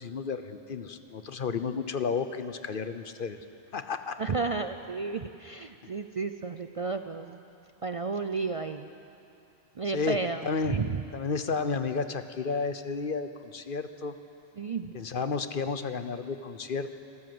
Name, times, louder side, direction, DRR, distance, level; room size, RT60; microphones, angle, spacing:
voice 1, 0.0-3.4 3.7-4.2 9.9-10.8 11.1-14.2 14.9-16.9, left 5 dB, 55° left, 10 dB, 1.0 m, -32 dB
voice 2, 4.2-7.4 7.8-8.9 9.8-11.0 14.6-14.9, right 4 dB, 40° right, 8 dB, 0.5 m, -32 dB
26.0 x 14.5 x 7.8 m, 2.8 s
omnidirectional pair, 1.1 m